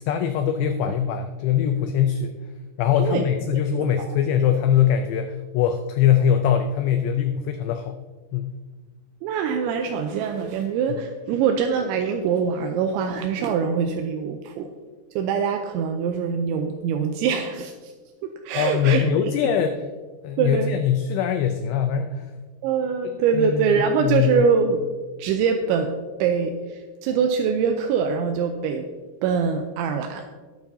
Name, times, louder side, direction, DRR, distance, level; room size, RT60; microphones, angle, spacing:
voice 1, 0.1-2.4 2.8-8.0 8.3-8.5 18.5-19.8 20.2-22.3 23.0-24.5, left 9 dB, 90° left, 6 dB, 2.4 m, -22 dB
voice 2, 3.8-4.2 9.2-14.7 15.1-17.9 18.2-19.0 19.4-19.5 20.4-20.7 22.6-24.8 25.2-25.9 26.2-28.9 29.2-30.3, right 6 dB, 85° right, 4 dB, 2.8 m, -23 dB
19.0 x 7.2 x 2.7 m, 1.3 s
omnidirectional pair, 5.6 m